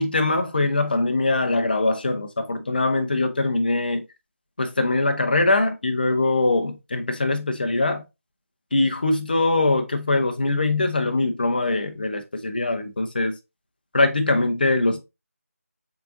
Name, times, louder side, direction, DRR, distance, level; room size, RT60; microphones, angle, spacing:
voice 1, 0.0-4.0 4.6-8.0 8.7-13.4 13.9-15.1, left 2 dB, 40° left, 0.7 m, -22 dB
5.6 x 3.8 x 2.5 m
figure-of-eight pair, 165°, 8 cm